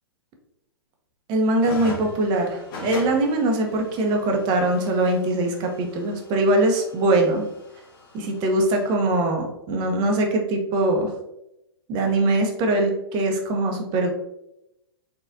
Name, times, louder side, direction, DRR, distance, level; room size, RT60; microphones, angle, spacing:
voice 1, 1.3-7.4 8.1-11.1 11.9-14.1, right 2 dB, 35° right, 2 dB, 1.0 m, -22 dB
sound 1, 1.6-8.9, left 2 dB, 55° left, 1.6 m, -41 dB
4.0 x 4.0 x 2.7 m, 0.85 s
hypercardioid pair, 115°, 13 cm